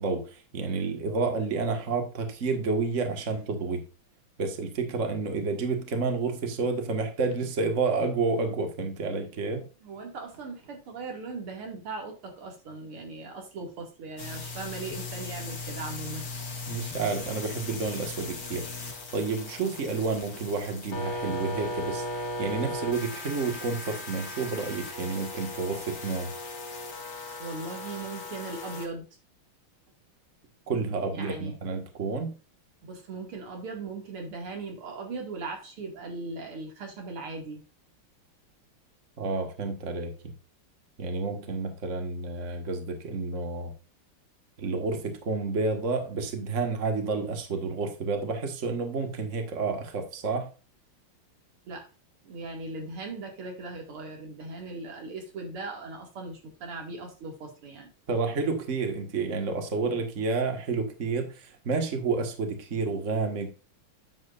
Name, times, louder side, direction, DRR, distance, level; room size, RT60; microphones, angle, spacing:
voice 1, 0.0-3.8 4.4-9.7 16.7-18.7 19.1-26.3 30.7-32.3 39.2-40.3 41.0-43.7 44.6-50.5 58.1-63.5, right 4 dB, 40° right, 4 dB, 1.8 m, -30 dB
voice 2, 9.8-16.2 27.4-29.0 31.1-31.6 32.8-37.6 51.7-51.8 52.2-57.9, right 3 dB, 85° right, 2 dB, 3.1 m, -38 dB
sound 1, 14.2-28.9, left 2 dB, 60° left, 2.6 m, -37 dB
9.7 x 7.6 x 2.5 m, 0.34 s
omnidirectional pair, 2.3 m